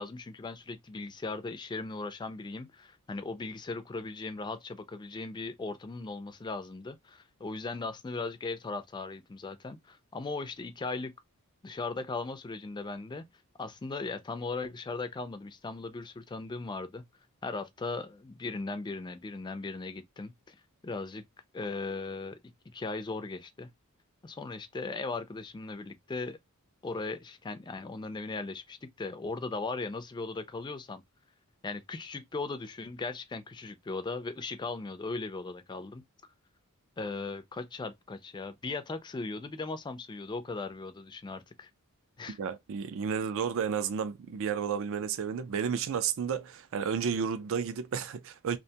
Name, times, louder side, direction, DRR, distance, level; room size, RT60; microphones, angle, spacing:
voice 1, 0.0-11.1 11.6-13.2 13.6-17.0 17.4-20.6 20.8-21.2 21.5-22.4 22.7-23.7 24.2-26.4 26.8-31.0 31.6-36.0 37.0-41.7 42.2-42.4, left 3 dB, 20° left, 0.3 m, -38 dB
voice 2, 42.3-48.6, right 7 dB, 60° right, 0.4 m, -32 dB
2.5 x 2.1 x 2.7 m
head